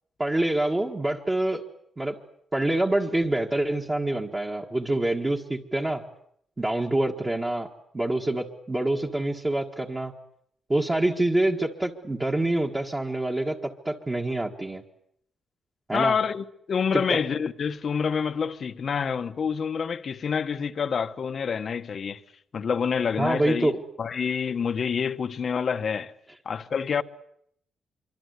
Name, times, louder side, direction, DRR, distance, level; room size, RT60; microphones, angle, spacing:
voice 1, 0.2-1.6 2.0-2.2 2.5-6.0 6.6-7.7 7.9-10.1 10.7-14.8 15.9-16.2 16.9-17.2 23.2-23.8, right 1 dB, 15° right, 1.7 m, -26 dB
voice 2, 15.9-22.2 22.5-23.7 24.0-26.1 26.4-27.0, left 6 dB, 45° left, 1.2 m, -27 dB
26.5 x 24.0 x 8.3 m
wide cardioid pair, 155°, 0 cm